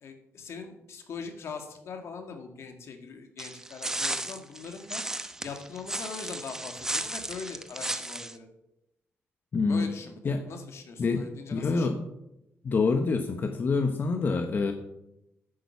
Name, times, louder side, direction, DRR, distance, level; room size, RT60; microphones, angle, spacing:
voice 1, 0.0-5.0 5.4-8.5 9.7-11.9, left 5 dB, 70° left, 5 dB, 2.0 m, -41 dB
sound 1, 3.4-8.3, right 1 dB, 10° right, 0.9 m, -34 dB
voice 2, 9.5-9.9 10.2-10.4 11.0-11.2 11.5-12.1 12.6-14.7, left 4 dB, 45° left, 6 dB, 1.1 m, -26 dB
10.0 x 8.9 x 7.1 m, 0.86 s
cardioid pair, 100°, 5 cm